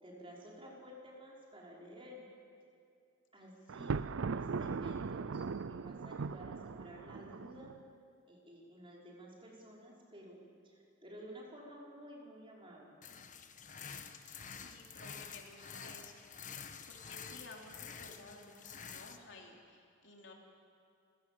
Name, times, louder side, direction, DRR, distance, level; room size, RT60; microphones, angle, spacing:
voice 1, 0.0-2.3 3.3-7.7 8.3-10.4 10.6-13.0, equal, 25° right, -3 dB, 5.3 m, -52 dB
Thunder, 3.7-7.8, right 5 dB, 80° right, 0.5 m, -39 dB
sound 1, 13.0-19.2, left 7 dB, 40° left, 1.2 m, -49 dB
voice 2, 14.4-20.3, left 2 dB, 65° left, 0 dB, 3.3 m, -55 dB
29.0 x 17.0 x 7.7 m, 2.4 s
head